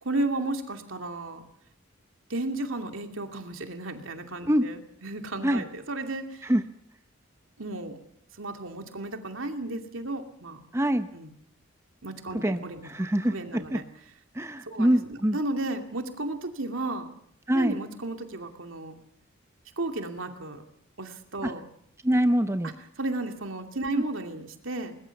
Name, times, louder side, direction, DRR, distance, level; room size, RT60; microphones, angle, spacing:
voice 1, 0.0-1.4 2.3-6.5 7.6-8.0 8.4-10.6 11.1-11.3 12.0-13.8 14.7-17.1 17.5-19.0 19.8-20.6 21.0-21.7 22.6-25.0, right 2 dB, 75° right, 5 dB, 2.5 m, -34 dB
voice 2, 10.7-11.1 12.4-13.8 14.3-15.4 17.5-17.7 21.4-21.5 22.0-22.7 23.9-24.0, equal, 15° right, 9 dB, 0.8 m, -24 dB
21.0 x 20.5 x 7.2 m, 0.71 s
head